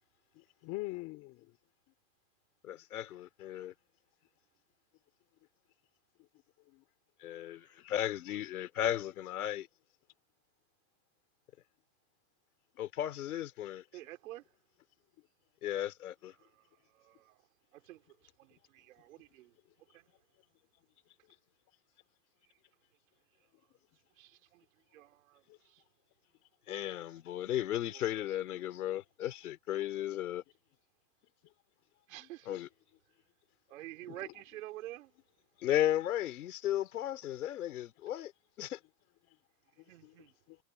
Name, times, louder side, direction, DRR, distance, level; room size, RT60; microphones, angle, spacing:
voice 1, 0.3-1.6 6.7-6.8 25.5-25.6 31.4-31.5 32.2-32.3 34.1-34.2 39.8-40.6, left 22 dB, 35° left, 4.0 m, -45 dB
voice 2, 2.6-3.7 7.2-9.7 12.8-13.8 15.6-16.3 26.7-30.4 32.5-32.7 35.6-38.3 38.6-38.8, left 12 dB, 90° left, 4.4 m, -35 dB
voice 3, 13.9-14.5 16.4-17.4 17.7-19.5 19.9-20.1 24.2-24.6 24.9-25.8 27.9-28.2 32.1-32.6 33.7-35.1 39.8-40.3, right 16 dB, 65° right, 4.4 m, -49 dB
supercardioid pair, 155°, 43 cm